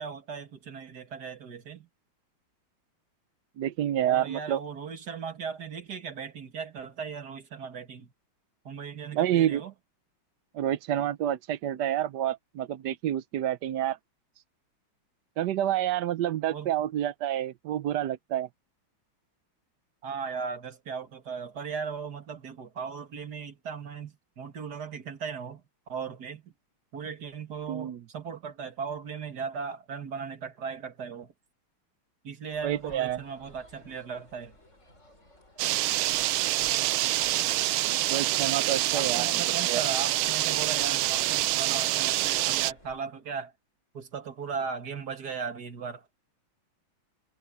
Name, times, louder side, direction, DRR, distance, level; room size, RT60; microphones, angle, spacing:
voice 1, 0.0-1.9 4.0-8.1 8.6-9.7 16.5-16.8 20.0-26.5 26.9-31.3 32.2-34.6 38.9-43.5 43.9-46.1, right 6 dB, 50° right, 2.4 m, -37 dB
voice 2, 3.6-4.6 9.1-9.6 10.5-14.0 15.4-18.5 27.7-28.0 32.6-33.2 38.1-39.3 39.7-39.8, right 11 dB, 70° right, 1.1 m, -28 dB
sound 1, 32.5-43.0, left 1 dB, 35° left, 7.4 m, -57 dB
sound 2, 35.6-42.7, right 16 dB, 90° right, 1.5 m, -26 dB
omnidirectional pair, 2.3 m